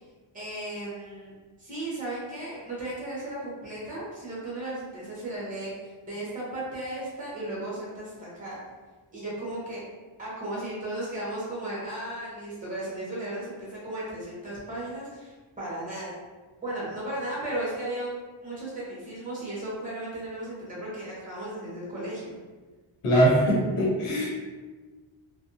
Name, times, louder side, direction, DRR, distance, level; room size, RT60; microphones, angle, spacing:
voice 1, 0.3-1.3 1.6-8.6 9.1-9.8 10.2-16.1 16.6-18.1 18.4-22.4, right 1 dB, 15° right, -8 dB, 0.9 m, -35 dB
voice 2, 23.0-24.3, equal, 80° left, -5 dB, 1.0 m, -22 dB
2.5 x 2.2 x 2.7 m, 1.4 s
wide cardioid pair, 125°, 50 cm